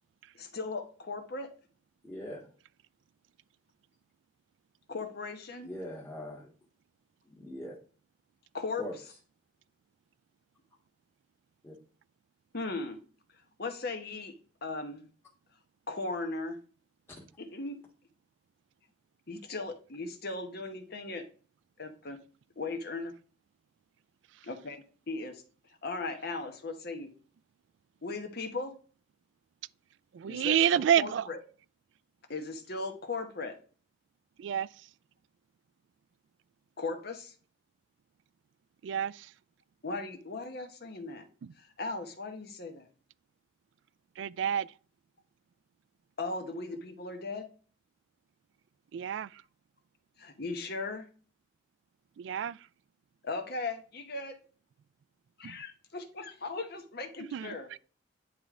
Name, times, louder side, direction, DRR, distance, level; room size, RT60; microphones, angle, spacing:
voice 1, 0.4-1.5 4.9-5.7 8.5-8.9 12.5-13.0 13.6-15.1 15.9-16.6 17.4-17.8 19.3-21.3 21.8-22.2 22.6-23.1 24.4-25.4 25.8-27.1 28.0-28.8 30.3-31.4 32.3-33.6 36.8-37.3 39.8-41.2 41.6-42.9 46.2-47.5 50.2-51.1 53.2-54.4 55.4-57.8, left 3 dB, 55° left, 1.0 m, -37 dB
voice 2, 2.0-2.5 5.6-6.5 7.2-7.7 8.8-8.9 11.6-11.7 17.1-17.2, left 1 dB, 15° left, 1.5 m, -41 dB
voice 3, 30.1-31.3 34.4-34.7 38.8-39.3 41.4-41.5 44.2-44.7 48.9-49.4 52.2-52.6 55.4-55.6 57.3-57.8, right 9 dB, 65° right, 0.3 m, -29 dB
9.9 x 3.3 x 3.7 m
head